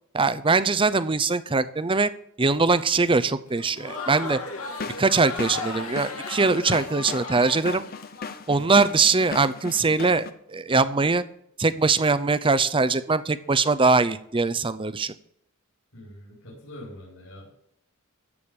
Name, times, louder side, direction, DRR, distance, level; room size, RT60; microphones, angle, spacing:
voice 1, 0.1-2.1 2.4-4.4 5.0-7.8 8.5-11.2 11.6-15.1, right 4 dB, 25° right, 15 dB, 0.6 m, -22 dB
Crowd, 3.5-8.3, left 3 dB, 90° left, 2.4 m, -36 dB
sound 1, 4.6-10.3, left 5 dB, 45° left, 0.8 m, -37 dB
voice 2, 15.9-17.5, left 1 dB, 65° left, -6 dB, 4.9 m, -44 dB
14.0 x 4.9 x 8.8 m, 0.71 s
head